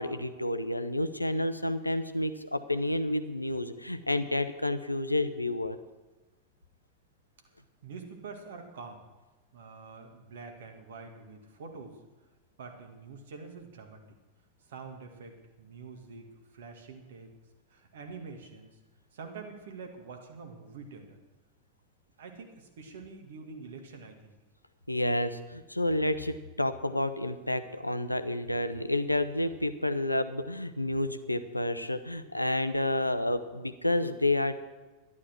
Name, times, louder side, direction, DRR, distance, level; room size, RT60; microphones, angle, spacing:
voice 1, 0.0-5.8 24.9-34.5, left 1 dB, 85° left, 10 dB, 0.7 m, -30 dB
voice 2, 7.8-9.0 9.5-12.1 12.6-14.1 14.6-17.3 17.7-18.8 19.1-21.2 22.2-24.4, right 4 dB, 60° right, 4 dB, 1.9 m, -46 dB
12.0 x 11.0 x 6.1 m, 1.2 s
figure-of-eight pair, 90°, 0 cm